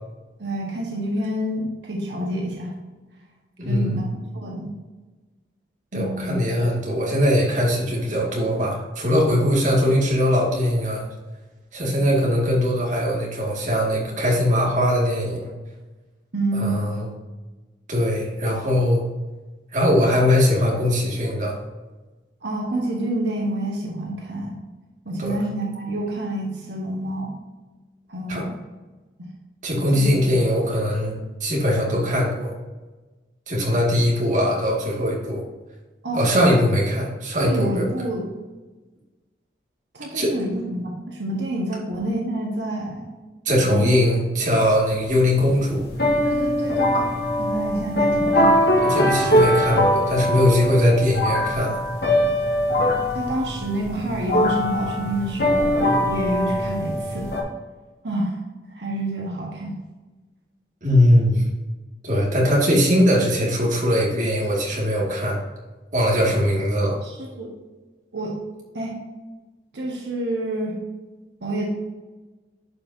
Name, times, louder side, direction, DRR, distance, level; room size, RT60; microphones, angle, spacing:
voice 1, 0.4-2.7 3.6-4.7 5.9-6.4 16.3-16.8 22.4-24.6 25.0-27.3 28.1-28.6 29.2-29.3 30.0-30.1 36.0-36.2 37.4-38.2 39.9-43.1 43.7-44.0 46.2-47.0 47.4-48.5 53.1-57.4 58.0-58.4 58.7-59.7 67.0-67.5 68.1-68.4 68.7-68.9 69.7-70.8 71.4-71.7, right 1 dB, 85° right, -1 dB, 1.5 m, -28 dB
voice 2, 3.6-4.1 5.9-11.1 11.7-15.5 16.6-17.1 17.9-19.0 19.7-21.5 25.2-25.4 28.3-28.4 29.6-32.5 33.5-35.4 36.1-37.9 40.1-40.3 43.5-45.8 48.9-51.8 60.8-61.4 62.0-65.4 65.9-67.0, left 1 dB, 45° right, -3 dB, 2.3 m, -21 dB
sound 1, 44.8-57.4, equal, 65° left, 2.1 m, -22 dB
10.5 x 5.6 x 2.8 m, 1.2 s
head